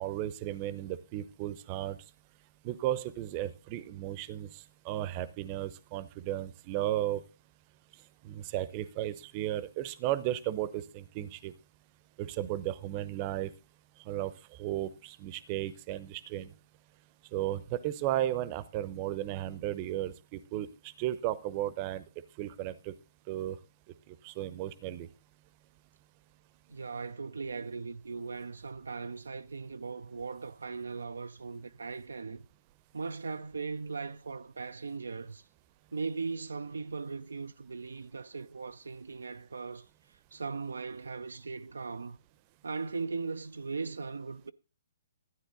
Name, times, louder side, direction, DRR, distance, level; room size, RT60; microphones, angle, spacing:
voice 1, 0.0-2.0 2.6-4.5 4.8-7.2 8.2-11.5 12.2-13.5 14.1-14.3 14.6-16.5 17.3-22.0 22.4-22.9 23.3-23.6 24.1-25.1, right 13 dB, 35° right, 0.8 m, -34 dB
voice 2, 26.7-32.4 32.9-35.5 35.9-42.2 42.6-44.5, right 4 dB, 80° right, 0.5 m, -39 dB
12.5 x 9.6 x 3.9 m
figure-of-eight pair, 135°, 0 cm